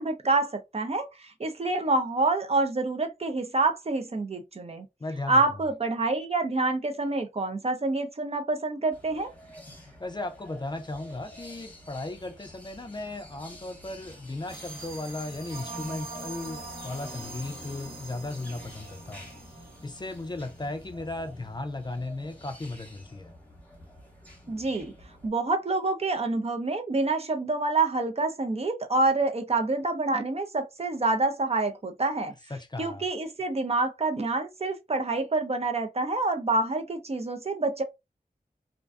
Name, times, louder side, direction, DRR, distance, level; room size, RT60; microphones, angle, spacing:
voice 1, 0.0-4.9 5.3-9.3 24.5-24.9 25.2-32.3 32.8-37.8, right 3 dB, 45° right, 0.5 m, -27 dB
voice 2, 5.0-5.4 10.0-19.3 19.8-23.3 32.5-33.0, left 2 dB, 30° left, 0.4 m, -36 dB
sound 1, 8.9-25.3, left 1 dB, 10° left, 0.9 m, -48 dB
sound 2, 14.5-20.8, right 3 dB, 80° right, 1.2 m, -43 dB
2.4 x 2.2 x 2.3 m
wide cardioid pair, 70°, 15 cm